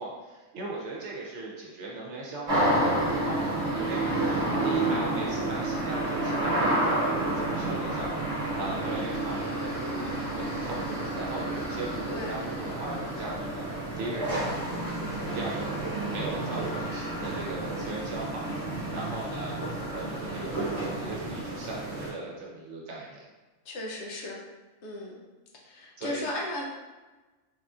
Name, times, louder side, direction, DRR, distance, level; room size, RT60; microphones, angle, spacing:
voice 1, 0.0-8.1 8.5-13.7 13.9-23.2 26.0-26.2, right 2 dB, 65° right, -3 dB, 1.0 m, -38 dB
sound 1, 2.5-22.1, right 1 dB, 25° right, 1.2 m, -30 dB
voice 2, 4.8-5.2 12.1-12.4 23.7-24.4 24.8-25.2 25.6-26.6, left 1 dB, 65° left, -1 dB, 0.8 m, -36 dB
3.5 x 2.6 x 2.3 m, 1.2 s
omnidirectional pair, 1.4 m